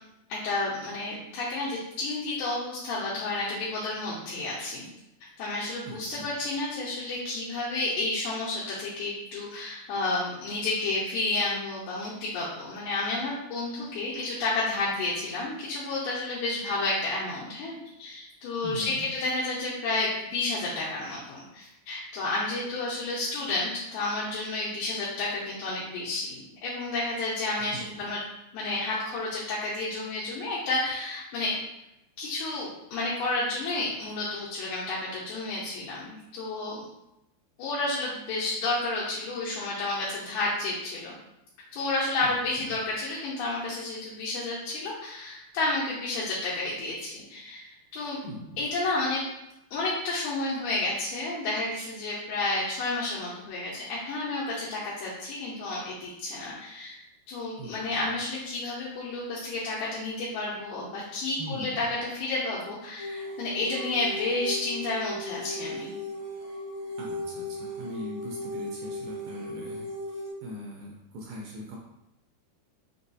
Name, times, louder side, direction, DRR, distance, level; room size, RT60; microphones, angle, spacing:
voice 1, 0.3-4.9 5.4-28.2 28.5-31.6 32.2-36.8 37.6-41.1 41.7-48.2 48.6-49.2 49.7-57.0 57.3-66.0, left 2 dB, 80° left, -7 dB, 2.6 m, -31 dB
voice 2, 5.9-6.3 18.6-19.1 27.6-27.9 42.2-42.7 48.2-48.7 57.6-58.0 61.4-61.9 67.0-71.8, equal, 80° right, -2 dB, 2.2 m, -41 dB
sound 1, 63.0-70.3, left 1 dB, 65° left, 2.1 m, -37 dB
6.0 x 2.3 x 2.6 m, 0.88 s
omnidirectional pair, 4.5 m